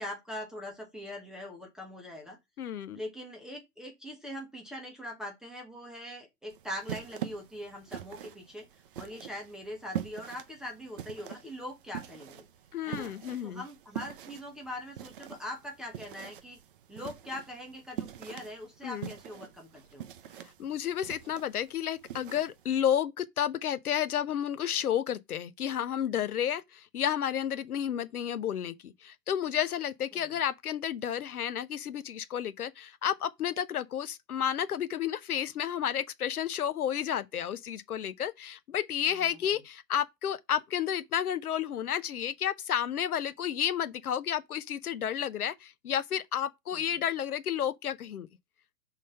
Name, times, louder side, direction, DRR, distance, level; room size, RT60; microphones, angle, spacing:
voice 1, 0.0-2.4 2.9-8.7 9.0-12.5 12.9-13.1 13.4-16.6 16.9-20.1 30.1-30.3 39.1-39.5 46.7-46.9, left 1 dB, ahead, 0.9 m, -42 dB
voice 2, 2.6-3.0 12.7-13.6 18.8-19.1 20.6-48.3, left 9 dB, 60° left, 0.8 m, -31 dB
sound 1, 6.5-22.7, right 10 dB, 35° right, 0.6 m, -44 dB
6.1 x 3.8 x 5.4 m
figure-of-eight pair, 125°, 50 cm